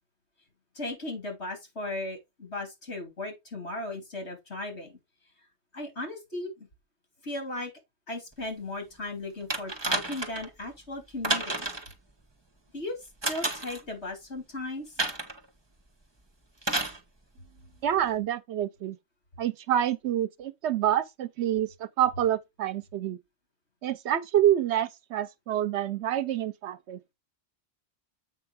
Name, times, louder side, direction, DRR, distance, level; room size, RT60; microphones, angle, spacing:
voice 1, 0.8-4.9 5.7-6.7 7.2-7.7 8.1-11.7 12.7-13.0 13.2-14.9, left 2 dB, 75° left, 3.4 m, -36 dB
sound 1, 9.5-10.5 11.2-11.9 13.2-13.8 15.0-15.4 16.6-17.0 18.0-18.1, right 2 dB, 25° right, 1.3 m, -30 dB
voice 2, 17.8-19.0 19.4-23.2 23.8-27.1, right 11 dB, 80° right, 0.9 m, -27 dB
8.1 x 5.5 x 3.6 m
omnidirectional pair, 1.1 m